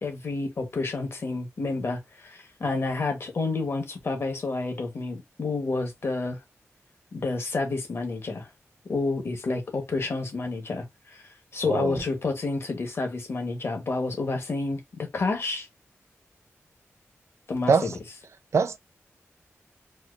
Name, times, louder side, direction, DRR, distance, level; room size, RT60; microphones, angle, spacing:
voice 1, 0.0-6.4 7.1-8.5 8.9-11.2 11.5-15.7 17.5-17.9, left 3 dB, 55° left, 1.1 m, -29 dB
voice 2, 11.6-12.0 17.7-18.0 18.5-18.8, right 5 dB, 70° right, 0.5 m, -23 dB
4.3 x 2.3 x 2.4 m
wide cardioid pair, 135°, 5 cm